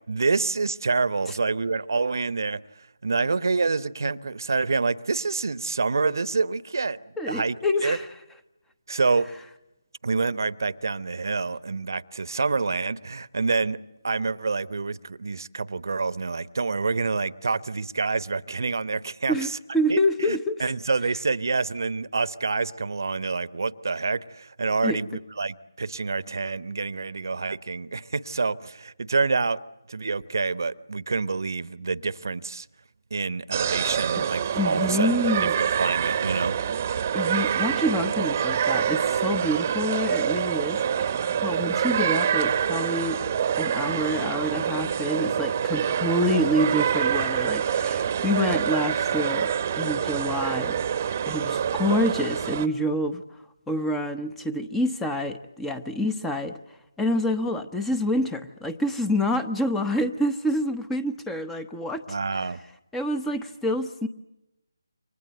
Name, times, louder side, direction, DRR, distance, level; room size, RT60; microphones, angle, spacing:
voice 1, 0.1-2.6 3.0-7.0 7.3-7.6 7.8-8.0 8.9-9.3 10.0-13.8 14.0-19.5 19.9-29.6 29.9-32.7 33.1-35.1 35.4-36.6 62.1-62.6, right 4 dB, 60° right, 1.1 m, -27 dB
voice 2, 7.2-8.1 19.3-20.6 24.8-25.0 34.1-34.2 34.6-35.6 37.1-43.2 43.6-49.5 49.8-50.8 51.3-53.2 53.7-56.6 57.0-62.0 62.9-64.1, left 1 dB, 5° left, 1.0 m, -27 dB
sound 1, 33.5-52.7, right 8 dB, 35° right, 1.1 m, -26 dB
29.5 x 25.0 x 8.0 m
figure-of-eight pair, 155°, 2 cm